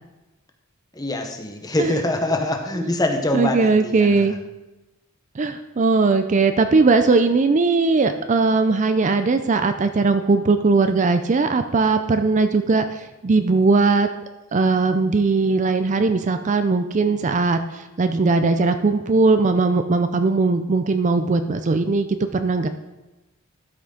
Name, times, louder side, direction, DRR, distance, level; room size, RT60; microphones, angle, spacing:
voice 1, 0.9-4.2, left 1 dB, 20° left, 3 dB, 0.9 m, -24 dB
voice 2, 3.3-4.3 5.4-14.1 14.5-22.1 22.3-22.7, right 3 dB, 35° right, 9 dB, 0.4 m, -19 dB
12.5 x 6.0 x 3.8 m, 1.0 s
head